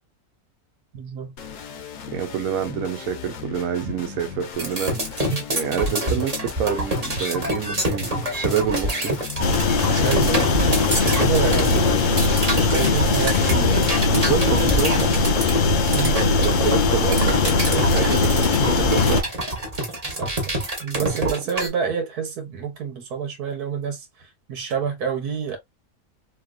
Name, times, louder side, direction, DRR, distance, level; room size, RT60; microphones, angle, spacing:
voice 1, 0.9-1.4 3.8-3.9 5.3-5.4 10.0-10.7 11.0-12.0 12.5-13.8 15.9-16.2 20.2-20.5 20.8-25.6, right 7 dB, 90° right, 1.5 m, -28 dB
sound 1, 1.4-15.7, left 7 dB, 65° left, 1.0 m, -38 dB
voice 2, 2.1-5.1 5.5-9.1 14.1-15.2 16.4-19.3 21.0-21.3, right 8 dB, 70° right, 1.1 m, -27 dB
sound 2, 4.6-21.7, right 1 dB, 30° right, 1.1 m, -26 dB
sound 3, 9.4-19.2, left 3 dB, 85° left, 0.4 m, -20 dB
3.0 x 2.8 x 2.3 m
omnidirectional pair, 1.6 m